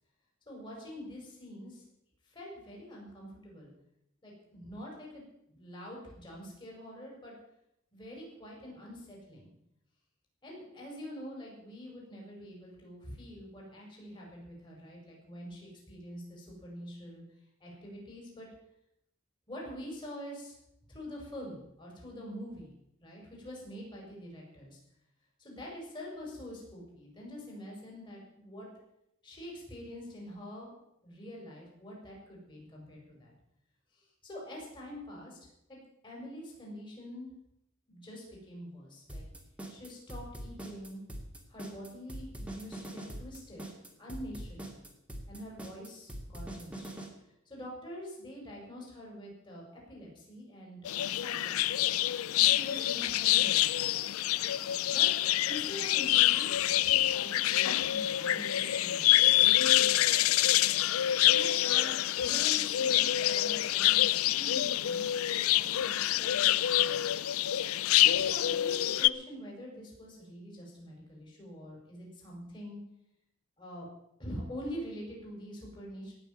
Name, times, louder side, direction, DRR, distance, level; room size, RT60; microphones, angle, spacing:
voice 1, 0.5-1.8 2.3-3.7 4.2-7.3 7.9-9.5 10.4-17.2 17.6-18.5 19.5-20.6 20.9-22.7 23.0-24.8 25.4-28.7 29.2-30.7 31.0-33.3 34.0-35.4 35.7-35.8 36.0-37.3 37.9-39.2 39.7-41.0 41.5-43.6 44.0-44.7 45.3-46.9 47.5-51.9 52.3-53.9 54.9-55.1 55.5-59.1 59.4-60.5 61.1-67.1 68.0-72.8 73.6-73.9 74.2-76.1, equal, 25° left, -2 dB, 5.6 m, -45 dB
sound 1, 39.1-47.1, right 1 dB, 5° right, 2.4 m, -42 dB
sound 2, 50.8-69.1, left 13 dB, 90° left, 0.4 m, -26 dB
18.0 x 6.5 x 9.0 m, 0.81 s
head